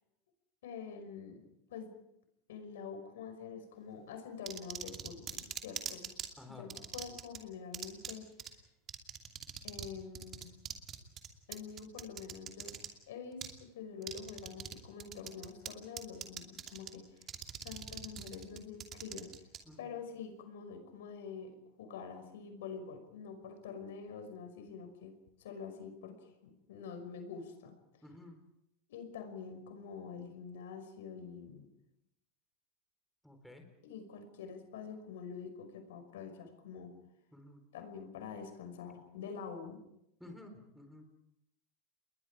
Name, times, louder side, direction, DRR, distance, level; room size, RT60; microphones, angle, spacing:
voice 1, 0.6-1.4 1.7-1.9 2.5-6.1 6.5-8.3 9.6-10.5 11.5-12.8 13.1-17.3 17.6-19.3 19.8-25.1 25.4-27.8 28.9-31.8 33.8-36.9 37.7-39.8, left 6 dB, 85° left, 7 dB, 5.6 m, -46 dB
sound 1, 4.5-6.3 6.7-7.4 7.7-8.1 8.4-8.5 8.9-9.9 10.1-12.9 13.4-13.5 14.0-14.7 15.0-15.7 16.0-16.9 17.2-19.6, right 9 dB, 25° right, 2.6 m, -42 dB
voice 2, 6.4-6.7 19.7-19.9 28.0-28.4 33.2-33.7 37.3-37.6 40.2-41.1, left 2 dB, ahead, 5 dB, 4.1 m, -52 dB
29.5 x 21.5 x 4.9 m, 0.82 s
supercardioid pair, 155°, 0 cm